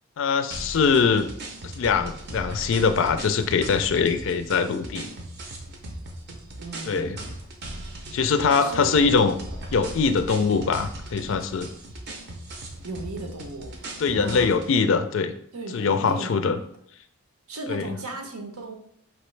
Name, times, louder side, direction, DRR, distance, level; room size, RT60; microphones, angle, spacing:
voice 1, 0.2-1.3 1.6-5.1 6.9-7.2 8.1-9.4 9.7-11.7 14.0-15.3 15.7-16.6 17.7-17.9, left 5 dB, 60° left, 9 dB, 0.3 m, -22 dB
sound 1, 0.5-14.7, right 1 dB, 45° right, 0.6 m, -38 dB
voice 2, 6.6-7.3 8.5-8.9 12.8-14.6 15.5-16.7 17.5-18.7, right 2 dB, 80° right, 4 dB, 0.8 m, -36 dB
5.0 x 3.0 x 3.2 m, 0.67 s
head